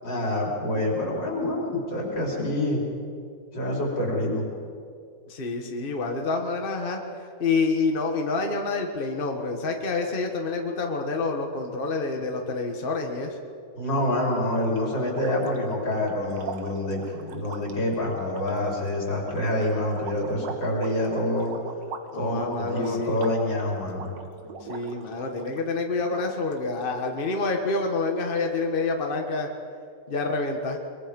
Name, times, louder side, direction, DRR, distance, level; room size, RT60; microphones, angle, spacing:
voice 1, 0.0-2.8 3.5-4.5 13.7-21.5 22.1-24.1, left 1 dB, 80° left, -2 dB, 5.2 m, -27 dB
voice 2, 5.3-7.0 7.4-13.4 22.1-23.2 24.7-29.5 30.1-30.8, left 3 dB, 30° left, 2 dB, 1.6 m, -27 dB
sound 1, 14.0-25.6 26.0-26.8, right 4 dB, 80° right, 2.0 m, -41 dB
23.0 x 22.5 x 5.4 m, 2.4 s
omnidirectional pair, 1.9 m